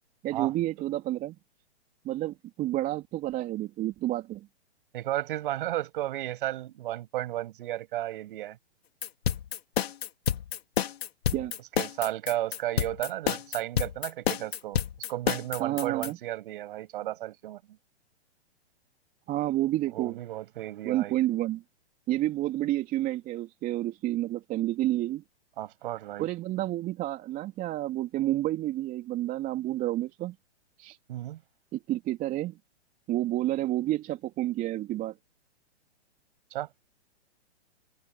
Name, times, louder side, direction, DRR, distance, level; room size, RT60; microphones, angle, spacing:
voice 1, 0.2-1.4 2.0-4.5 11.3-11.5 15.6-16.2 19.3-20.2 20.8-21.6 22.1-25.2 26.2-30.3 30.8-31.0 31.7-32.6 33.1-35.1, right 15 dB, 25° right, 3.2 m, -30 dB
voice 2, 4.9-8.6 11.8-14.8 15.1-17.6 19.9-21.2 25.6-26.3 31.1-31.4 36.5-36.7, right 14 dB, 50° right, 7.9 m, -33 dB
sound 1, 9.0-16.1, left 9 dB, 65° left, 2.9 m, -29 dB
hypercardioid pair, 125°, 33 cm